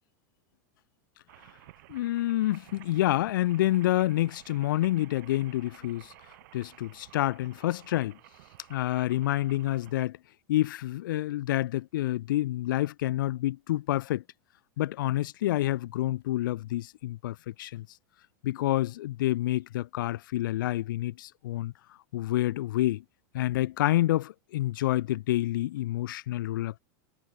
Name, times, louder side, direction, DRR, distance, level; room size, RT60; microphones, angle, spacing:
sound 1, 1.3-9.9, right 19 dB, 65° right, 7.2 m, -54 dB
voice 1, 1.9-6.1 6.5-8.2 8.7-10.2 10.5-14.2 14.8-17.9 18.4-21.7 22.1-23.0 23.3-26.8, left 15 dB, 80° left, 0.6 m, -28 dB
supercardioid pair, 145°, 11 cm